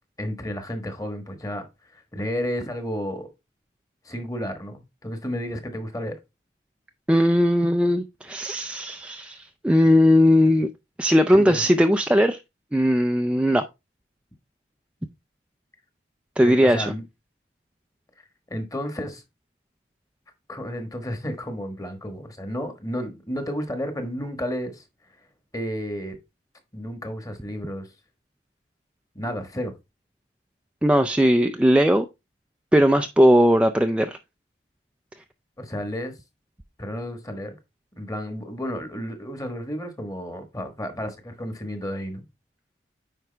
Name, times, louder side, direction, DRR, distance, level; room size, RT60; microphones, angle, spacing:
voice 1, 0.2-3.3 4.0-6.2 11.3-11.7 16.4-17.0 18.5-19.2 20.5-24.8 25.5-26.2 26.7-27.9 29.1-29.7 35.6-36.1 36.8-37.5 38.0-42.2, equal, 20° left, 1.3 m, -32 dB
voice 2, 7.1-10.7 11.0-12.4 12.7-13.6 16.4-16.9 30.8-32.1 32.7-34.2, equal, 5° right, 0.3 m, -18 dB
9.3 x 4.7 x 3.3 m
head